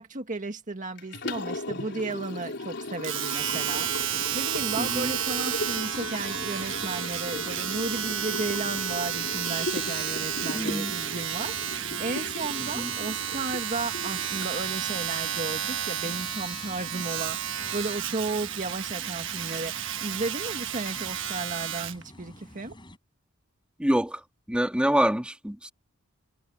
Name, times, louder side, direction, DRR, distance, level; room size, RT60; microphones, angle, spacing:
voice 1, 0.0-22.7, right 3 dB, 40° right, 1.8 m, -34 dB
Liquid, 1.0-15.1, left 2 dB, 60° left, 4.0 m, -37 dB
Domestic sounds home sounds, 3.0-22.0 22.7-22.8, right 10 dB, 65° right, 1.3 m, -32 dB
sound 1, 3.4-23.0, left 1 dB, 25° left, 7.8 m, -47 dB
voice 2, 4.8-5.1 10.5-10.9 12.7-12.9 23.8-24.2 24.5-25.7, equal, 5° right, 2.3 m, -26 dB
head